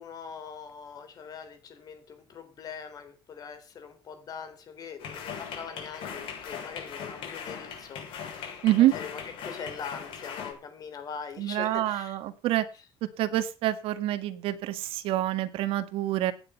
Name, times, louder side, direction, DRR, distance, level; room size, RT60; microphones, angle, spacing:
voice 1, 0.0-12.2 12.7-12.9, left 6 dB, 40° left, 9 dB, 3.5 m, -42 dB
sound 1, 5.0-10.5, left 7 dB, 65° left, 7.0 m, -39 dB
voice 2, 11.4-12.7 13.2-16.3, right 14 dB, 70° right, 9 dB, 1.8 m, -26 dB
16.5 x 9.5 x 5.6 m, 0.33 s
cardioid pair, 160°, 10 cm